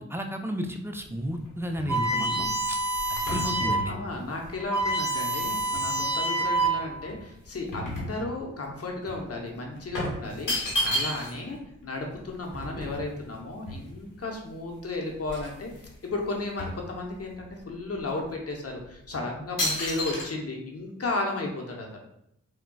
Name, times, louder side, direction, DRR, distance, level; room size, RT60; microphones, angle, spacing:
voice 1, 0.0-2.8 3.3-3.9, equal, 10° right, 4 dB, 0.4 m, -32 dB
sound 1, 1.0-6.1 6.6-8.7 9.0-9.2 9.9-11.5 11.8-11.9 12.1-14.3 14.8-14.9 15.2-16.0 16.2-17.5 18.0-18.2 18.8-19.1 19.6-20.3, left 1 dB, 90° left, 0.9 m, -33 dB
sound 2, 1.9-3.9 4.3-4.4 4.6-7.0, right 2 dB, 10° left, 0.8 m, -27 dB
voice 2, 2.0-2.5 3.3-15.7 16.0-21.9, left 2 dB, 50° left, 0 dB, 0.8 m, -34 dB
Engine starting, 9.0-13.9 14.1-14.2 15.1-15.5, right 1 dB, 40° right, 1.0 m, -45 dB
3.7 x 2.2 x 2.2 m, 0.78 s
cardioid pair, 45°, 31 cm